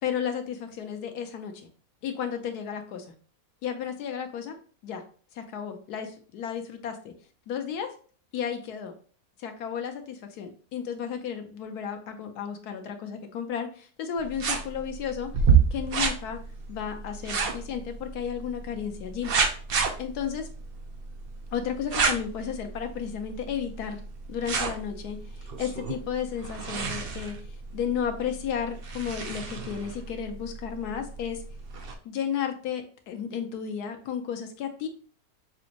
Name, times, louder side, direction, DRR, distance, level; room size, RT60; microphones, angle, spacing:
voice 1, 0.0-1.7 2.0-3.1 3.6-4.6 4.8-5.0 5.3-7.1 7.5-7.9 8.3-8.9 9.4-15.3 15.7-16.4 16.7-19.3 20.0-20.5 21.5-24.0 24.3-27.4 27.7-31.4 32.0-34.9, left 8 dB, 85° left, 6 dB, 1.3 m, -33 dB
sound 1, 14.2-31.9, right 5 dB, 50° right, 0.7 m, -31 dB
5.9 x 2.6 x 2.9 m, 0.42 s
omnidirectional pair, 1.6 m